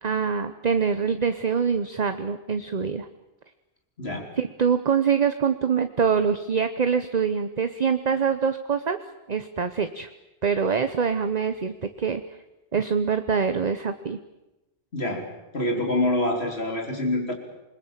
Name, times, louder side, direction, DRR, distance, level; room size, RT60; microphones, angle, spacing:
voice 1, 0.0-3.1 4.4-9.0 9.3-10.1 10.4-12.2 12.7-14.2, right 6 dB, 40° right, 9 dB, 1.0 m, -24 dB
voice 2, 4.0-4.3 14.9-15.3 15.5-17.3, left 1 dB, 65° left, 2 dB, 4.1 m, -26 dB
27.5 x 21.0 x 7.4 m, 0.99 s
omnidirectional pair, 1.2 m